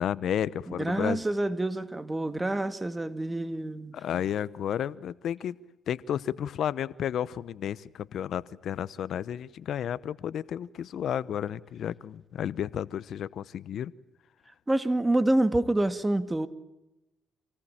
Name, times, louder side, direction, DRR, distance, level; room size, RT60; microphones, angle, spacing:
voice 1, 0.0-1.2 3.9-5.6 5.9-13.9, left 9 dB, 70° left, 0.8 m, -32 dB
voice 2, 0.7-4.0 14.7-16.5, right 1 dB, 15° right, 2.0 m, -27 dB
28.0 x 19.5 x 8.8 m
cardioid pair, 90°, 0 cm